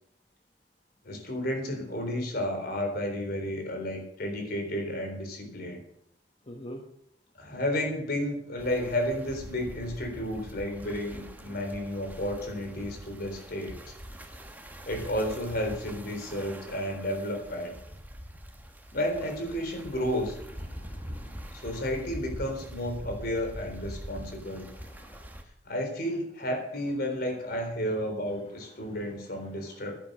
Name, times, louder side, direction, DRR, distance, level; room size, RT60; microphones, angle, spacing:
voice 1, 1.0-5.8 7.4-13.9 14.9-17.7 18.9-20.4 21.5-24.7 25.7-29.9, equal, 60° left, 4 dB, 3.8 m, -32 dB
voice 2, 6.5-6.8 20.7-21.4 24.7-25.2 28.8-29.0 29.5-29.9, equal, 35° left, 2 dB, 1.2 m, -47 dB
sound 1, 8.6-25.4, equal, 10° right, 1.2 m, -44 dB
11.0 x 10.5 x 6.7 m, 0.71 s
head